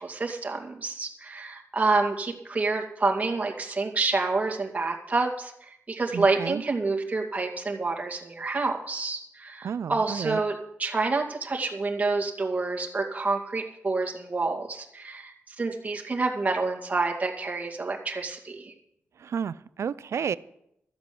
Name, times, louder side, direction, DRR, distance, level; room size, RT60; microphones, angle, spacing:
voice 1, 0.0-18.7, right 3 dB, 30° right, 2.2 m, -28 dB
voice 2, 6.1-6.6 9.6-10.4 19.2-20.4, right 7 dB, 70° right, 0.4 m, -31 dB
13.5 x 7.9 x 6.9 m
wide cardioid pair, 100°, 5 cm